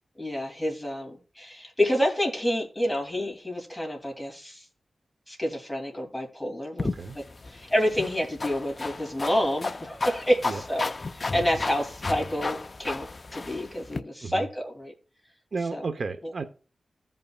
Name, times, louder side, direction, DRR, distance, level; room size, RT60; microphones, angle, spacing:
voice 1, 0.2-4.6 5.3-6.9 7.1-13.1 13.3-14.9 15.7-15.9 16.2-16.3, equal, 5° left, 2.6 m, -28 dB
sound 1, 6.8-14.0, left 3 dB, 40° left, 0.5 m, -34 dB
voice 2, 6.8-7.2 10.4-10.6 14.2-14.5 15.5-16.4, right 4 dB, 60° right, 0.7 m, -33 dB
15.5 x 5.5 x 2.3 m
wide cardioid pair, 120°, 0 cm